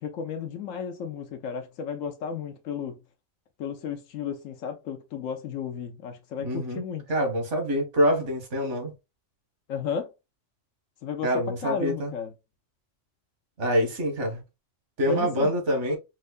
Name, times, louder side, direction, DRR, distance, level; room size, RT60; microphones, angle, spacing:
voice 1, 0.0-3.0 3.6-7.0 9.7-10.1 11.0-12.3 15.1-15.5, left 6 dB, 90° left, 1.1 m, -33 dB
voice 2, 6.4-6.8 7.1-8.9 11.2-12.1 13.6-14.4 15.0-16.0, equal, 65° right, 1.7 m, -25 dB
5.5 x 2.1 x 2.3 m
omnidirectional pair, 1.3 m